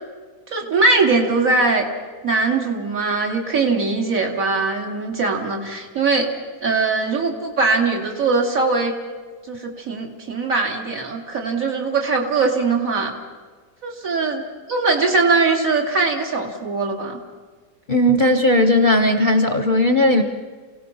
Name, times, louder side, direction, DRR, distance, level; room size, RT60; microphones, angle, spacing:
voice 1, 0.5-1.8 2.2-6.3 6.6-8.9 9.5-13.1 13.8-14.4 14.7-17.2, right 3 dB, 55° right, 0 dB, 3.0 m, -21 dB
voice 2, 17.9-20.2, left 1 dB, 35° left, 6 dB, 0.9 m, -16 dB
28.0 x 17.5 x 5.7 m, 1.5 s
omnidirectional pair, 1.8 m